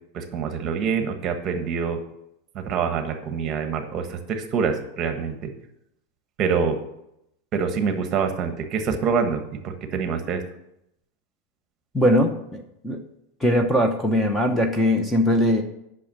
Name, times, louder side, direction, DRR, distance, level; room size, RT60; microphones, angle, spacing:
voice 1, 0.1-2.0 2.5-5.5 6.4-6.8 7.5-10.4, right 6 dB, 35° right, 7 dB, 1.4 m, -26 dB
voice 2, 11.9-13.0 13.4-15.6, equal, 5° left, 5 dB, 0.9 m, -21 dB
8.4 x 6.3 x 7.3 m, 0.81 s
supercardioid pair, 140°, 0 cm